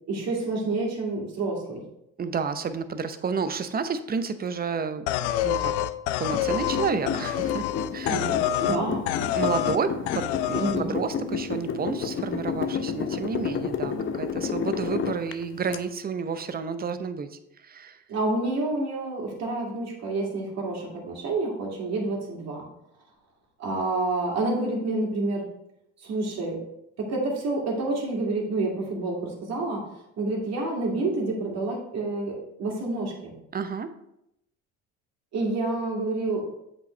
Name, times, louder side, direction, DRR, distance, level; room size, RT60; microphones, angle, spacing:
voice 1, 0.1-1.8 8.1-9.1 10.5-10.9 18.1-22.6 23.6-25.5 26.0-26.6 27.0-29.8 30.2-33.4 35.3-36.5, right 2 dB, 50° right, -2 dB, 2.6 m, -28 dB
voice 2, 2.2-5.1 5.4-5.7 6.2-7.6 7.9-8.2 9.3-17.3 17.6-18.0 33.5-33.9, right 5 dB, 30° right, 11 dB, 0.7 m, -30 dB
sound 1, 5.1-8.8 9.1-9.8 10.1-10.8, left 12 dB, 85° left, 0.5 m, -27 dB
sound 2, 6.3-15.8, left 6 dB, 40° left, 0.7 m, -31 dB
8.0 x 5.4 x 3.3 m, 0.80 s
hypercardioid pair, 70°, 33 cm